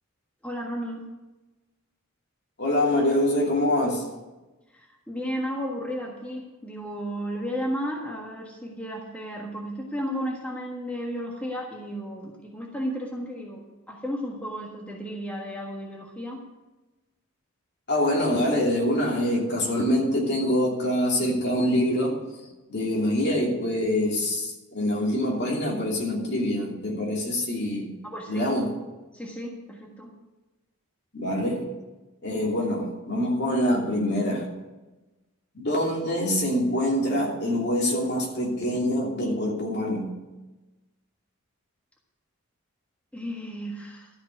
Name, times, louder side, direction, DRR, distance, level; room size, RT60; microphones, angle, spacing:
voice 1, 0.4-1.1 4.7-13.6 13.9-16.4 28.0-28.6 29.1-30.1 43.1-44.1, equal, 5° left, -2 dB, 1.5 m, -33 dB
voice 2, 2.6-4.1 17.9-22.2 22.7-27.9 28.3-28.7 31.1-31.6 32.2-34.5 35.5-40.1, left 1 dB, 50° left, -2 dB, 3.0 m, -25 dB
13.0 x 6.2 x 9.1 m, 1.1 s
head